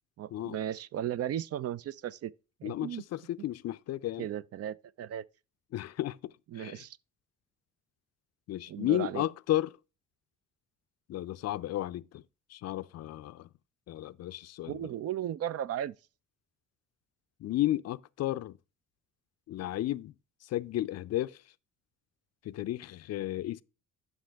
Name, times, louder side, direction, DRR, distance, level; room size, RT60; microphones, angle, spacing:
voice 1, 0.2-2.3 2.6-3.0 4.2-5.2 6.5-7.0 8.7-9.3 14.6-15.9, right 11 dB, 55° right, 0.4 m, -35 dB
voice 2, 2.6-4.3 5.7-6.2 6.5-6.8 8.5-9.7 11.1-12.2 12.5-13.5 13.9-14.7 17.4-18.6 19.5-20.1 20.5-21.4 22.4-23.6, left 14 dB, 55° left, 0.4 m, -33 dB
11.5 x 5.3 x 3.4 m
cardioid pair, 90°, 30 cm